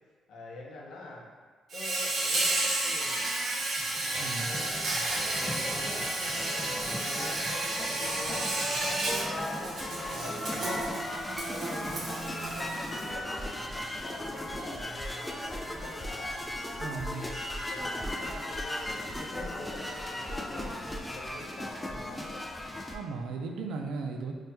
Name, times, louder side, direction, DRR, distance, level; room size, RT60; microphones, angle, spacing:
voice 1, 0.3-1.2 1.7-3.3 4.4-10.9 11.5-16.5 17.0-20.7 21.1-22.6, left 2 dB, 75° left, -2 dB, 0.6 m, -45 dB
Insect, 1.7-13.1, right 2 dB, 60° right, 0.7 m, -32 dB
sound 1, 3.6-23.0, left 1 dB, 10° left, 0.3 m, -37 dB
voice 2, 4.2-4.6 16.8-17.3 22.9-24.3, right 4 dB, 85° right, 3 dB, 0.3 m, -36 dB
4.1 x 2.2 x 2.2 m, 1.4 s
cardioid pair, 90°, 0 cm